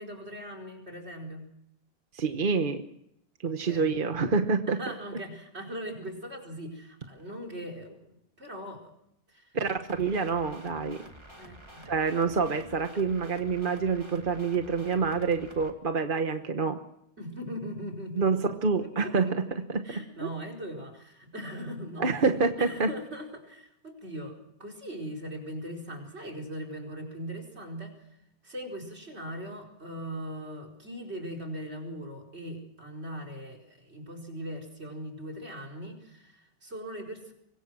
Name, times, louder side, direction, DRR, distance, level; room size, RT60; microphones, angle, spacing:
voice 1, 0.0-1.5 3.4-3.9 4.7-8.9 9.3-9.6 11.4-11.9 17.2-19.5 19.8-22.1 22.6-28.2 28.4-37.3, equal, 85° right, 5 dB, 4.8 m, -40 dB
voice 2, 2.1-2.8 3.4-4.8 9.5-11.0 11.8-16.8 18.2-19.4 19.7-20.3 22.0-22.9, right 4 dB, 55° right, 7 dB, 1.3 m, -27 dB
sound 1, 9.9-15.7, right 1 dB, 25° right, 2.5 m, -49 dB
25.5 x 22.0 x 6.2 m, 0.78 s
omnidirectional pair, 1.1 m